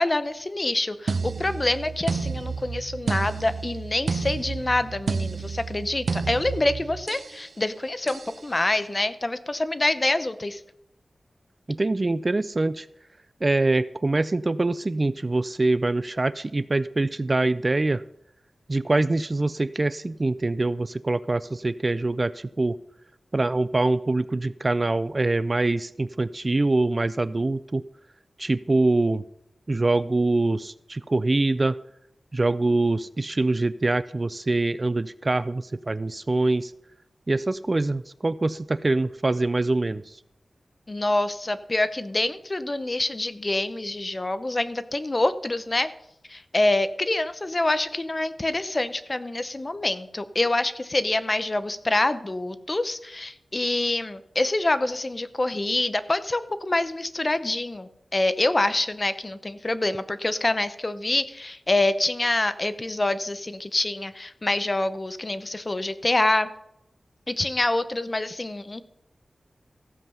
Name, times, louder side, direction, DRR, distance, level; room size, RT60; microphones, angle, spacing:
voice 1, 0.0-10.6 40.9-45.9 46.3-66.5 67.3-68.8, left 2 dB, 30° left, 12 dB, 0.7 m, -26 dB
sound 1, 1.1-7.4 8.1-8.4, right 4 dB, 75° right, 0.6 m, -30 dB
voice 2, 11.7-12.9 13.4-18.0 18.7-22.8 23.3-27.8 28.4-29.2 29.7-31.8 32.3-36.7 37.3-40.2, right 2 dB, 30° right, 16 dB, 0.4 m, -24 dB
15.0 x 7.6 x 5.5 m, 0.79 s
wide cardioid pair, 110°, 0 cm